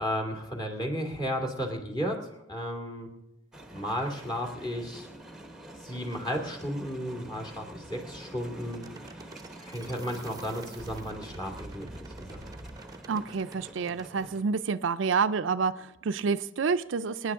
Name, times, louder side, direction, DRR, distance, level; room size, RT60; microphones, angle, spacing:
voice 1, 0.0-2.2 2.5-3.1 3.7-5.1 5.8-8.9 9.6-11.9 12.2-12.4, equal, 20° left, 2 dB, 2.6 m, -33 dB
sound 1, 3.5-14.4, right 1 dB, 5° right, 1.2 m, -47 dB
sound 2, 8.6-14.1, right 2 dB, 20° right, 0.8 m, -46 dB
voice 2, 13.1-17.3, right 5 dB, 70° right, 11 dB, 0.5 m, -28 dB
24.0 x 9.9 x 3.7 m, 0.98 s
head